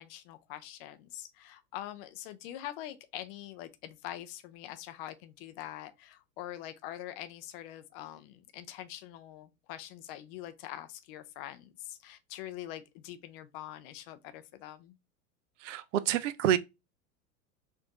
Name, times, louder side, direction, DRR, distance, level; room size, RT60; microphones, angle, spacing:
voice 1, 0.0-15.0, left 13 dB, 40° left, 0.5 m, -44 dB
voice 2, 15.6-16.6, right 11 dB, 55° right, 0.5 m, -28 dB
4.3 x 2.6 x 2.8 m
hypercardioid pair, 90°, 45 cm